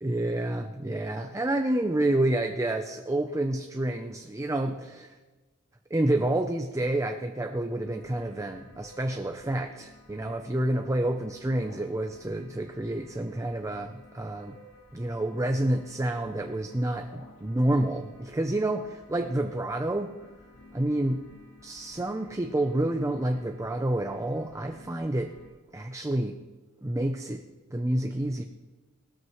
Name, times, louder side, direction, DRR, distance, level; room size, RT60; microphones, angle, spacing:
voice 1, 0.0-5.2 5.9-14.6 14.9-20.1 20.7-21.2 21.6-25.3 25.7-26.4 26.8-27.4 27.7-28.4, right 1 dB, 15° right, 5 dB, 0.5 m, -29 dB
sound 1, 7.7-25.5, left 2 dB, 85° left, 3.8 m, -53 dB
19.0 x 13.5 x 3.1 m, 1.2 s
head